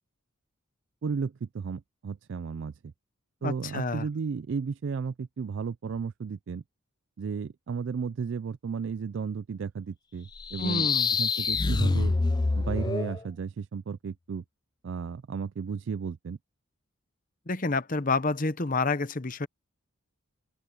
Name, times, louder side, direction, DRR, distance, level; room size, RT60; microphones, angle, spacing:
voice 1, 1.0-2.7 3.4-6.6 7.2-10.9 11.2-12.1 12.5-14.4 14.8-16.4, right 5 dB, 60° right, 0.3 m, -34 dB
voice 2, 3.4-4.1 10.6-11.1 17.5-19.5, left 3 dB, 40° left, 0.9 m, -28 dB
sound 1, 10.4-13.2, left 4 dB, 20° left, 0.4 m, -26 dB
head